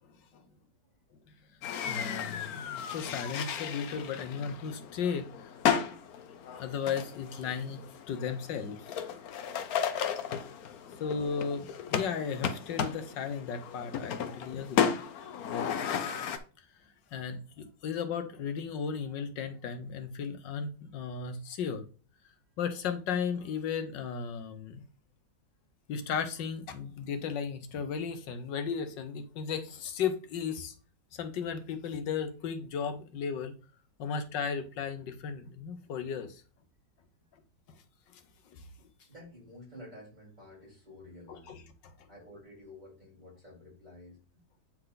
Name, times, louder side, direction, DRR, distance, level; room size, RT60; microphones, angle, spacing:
voice 1, 0.3-1.0 37.2-37.3 39.0-41.6 42.1-44.2, left 1 dB, 25° right, 4.9 m, -52 dB
sound 1, 1.6-16.4, left 8 dB, 60° left, 1.2 m, -34 dB
voice 2, 1.9-5.6 6.6-7.8 8.1-9.2 10.0-10.5 10.8-14.9 17.1-21.8 22.6-24.8 25.9-30.7 31.1-33.5 34.0-36.4 38.1-38.2 38.5-38.6 41.3-41.9, left 6 dB, 80° left, 1.6 m, -35 dB
8.8 x 4.5 x 4.0 m
omnidirectional pair, 1.9 m